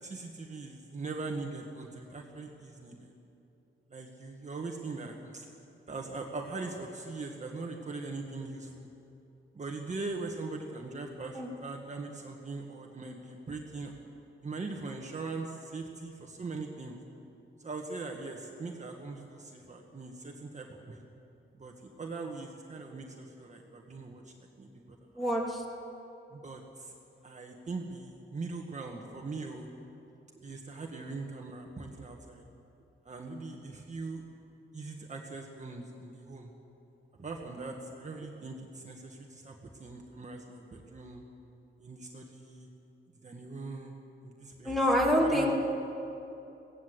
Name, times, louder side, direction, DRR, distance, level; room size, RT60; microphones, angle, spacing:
voice 1, 0.0-3.1 3.9-5.5 5.9-8.9 9.5-13.9 14.4-17.0 17.6-21.0 21.6-25.0 26.3-26.9 27.2-29.7 30.4-32.4 33.0-34.2 34.7-36.5 37.2-41.2 41.8-42.7 43.2-43.9 44.2-44.8 45.2-45.5, right 3 dB, 35° right, 1 dB, 1.6 m, -41 dB
voice 2, 25.2-25.6 44.6-45.7, equal, ahead, -2 dB, 2.5 m, -26 dB
22.0 x 17.0 x 8.1 m, 2.8 s
wide cardioid pair, 165°, 21 cm